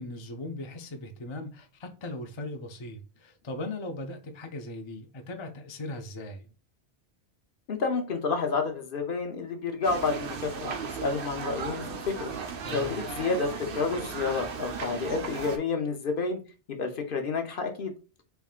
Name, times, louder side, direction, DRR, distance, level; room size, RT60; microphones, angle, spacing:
voice 1, 0.0-6.5 12.6-13.0, left 2 dB, 40° left, 0.4 m, -38 dB
voice 2, 7.7-12.3 12.7-16.4 16.7-17.9, left 4 dB, 55° left, 0.8 m, -30 dB
sound 1, 9.8-15.6, right 6 dB, 60° right, 0.8 m, -36 dB
3.6 x 3.4 x 2.3 m
omnidirectional pair, 1.1 m